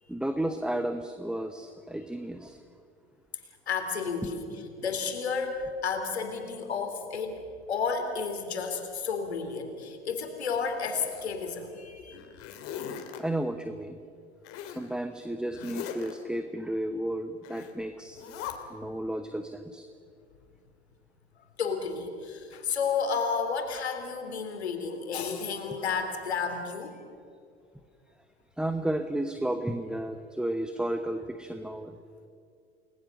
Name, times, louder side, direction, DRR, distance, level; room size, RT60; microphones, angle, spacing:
voice 1, 0.1-2.6 4.2-4.3 13.2-14.0 14.7-18.2 18.7-19.9 28.6-32.0, right 1 dB, ahead, 8 dB, 1.1 m, -32 dB
voice 2, 3.7-7.4 7.7-12.2 21.6-27.0, left 5 dB, 75° left, 6 dB, 3.6 m, -32 dB
Zipper (clothing), 10.6-11.6 12.1-13.2 14.4-14.9 15.5-16.1 17.4-17.7 18.1-18.5, left 9 dB, 45° left, 3.1 m, -40 dB
30.0 x 20.5 x 6.7 m, 2.3 s
figure-of-eight pair, 85°, 33 cm